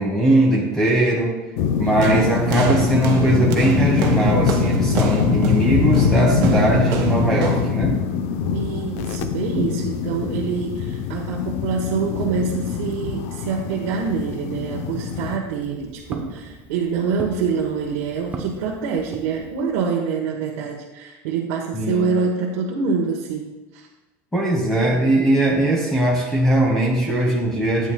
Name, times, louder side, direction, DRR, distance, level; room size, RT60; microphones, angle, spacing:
voice 1, 0.0-1.4 1.8-8.0 21.7-22.1 24.3-27.9, right 1 dB, 5° left, -3 dB, 1.3 m, -20 dB
sound 1, 1.6-15.4, left 7 dB, 80° left, 0.6 m, -23 dB
sound 2, 2.0-7.8, right 8 dB, 55° right, 1.2 m, -27 dB
voice 2, 8.5-23.9, right 5 dB, 85° right, -2 dB, 1.1 m, -25 dB
Walk footsteps, 15.3-19.8, right 3 dB, 20° right, 0.8 m, -38 dB
12.0 x 8.9 x 2.2 m, 1.1 s
supercardioid pair, 145°, 8 cm